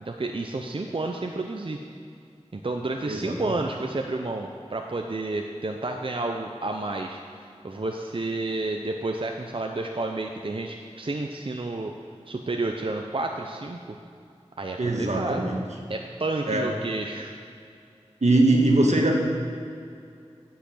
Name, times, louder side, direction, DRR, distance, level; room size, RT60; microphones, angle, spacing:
voice 1, 0.0-1.8 2.5-11.9 12.3-14.0 14.6-15.5 15.9-17.3, right 2 dB, 50° right, 3 dB, 0.6 m, -31 dB
voice 2, 3.1-3.6 14.8-15.6 16.5-16.6 18.2-19.2, right 2 dB, 80° right, 0 dB, 1.5 m, -22 dB
10.5 x 5.7 x 7.6 m, 2.4 s
wide cardioid pair, 55°, 12 cm